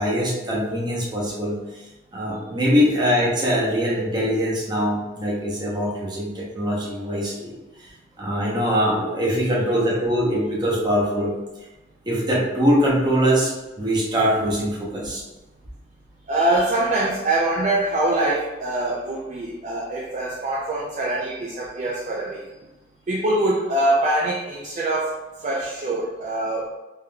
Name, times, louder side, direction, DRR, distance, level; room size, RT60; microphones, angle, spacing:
voice 1, 0.0-1.6 2.1-7.5 7.8-7.9 8.2-11.3 12.0-15.2, equal, 25° right, -5 dB, 0.8 m, -22 dB
voice 2, 16.3-22.4 23.1-25.2 25.4-26.7, right 1 dB, 40° right, -4 dB, 0.4 m, -23 dB
3.6 x 2.8 x 2.2 m, 1.1 s
head